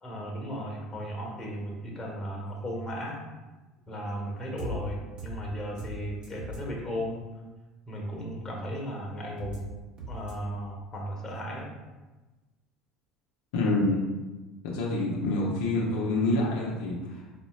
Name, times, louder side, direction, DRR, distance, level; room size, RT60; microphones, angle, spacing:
voice 1, 0.0-3.2 3.9-7.2 7.9-9.7 10.1-11.7, equal, 25° left, -1 dB, 1.2 m, -35 dB
sound 1, 4.6-4.8 5.2-5.4 5.8-6.0 6.2-6.6 9.4-9.6 10.0-10.3, right 1 dB, 35° right, 1.4 m, -38 dB
voice 2, 13.5-14.0 14.6-17.3, left 2 dB, 65° left, -3 dB, 0.7 m, -27 dB
4.3 x 3.9 x 2.3 m, 1.2 s
hypercardioid pair, 70°, 3 cm